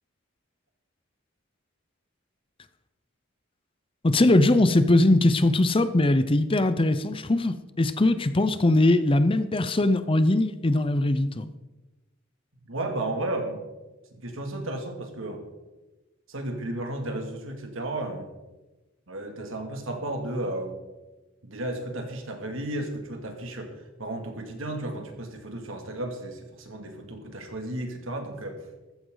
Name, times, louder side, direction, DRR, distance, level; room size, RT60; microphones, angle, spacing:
voice 1, 4.0-11.5, left 2 dB, 25° left, 0.6 m, -21 dB
voice 2, 12.6-13.6 14.1-15.4 16.3-18.3 19.1-20.8 21.4-28.6, right 1 dB, 75° right, 2.6 m, -33 dB
14.5 x 14.0 x 4.0 m
head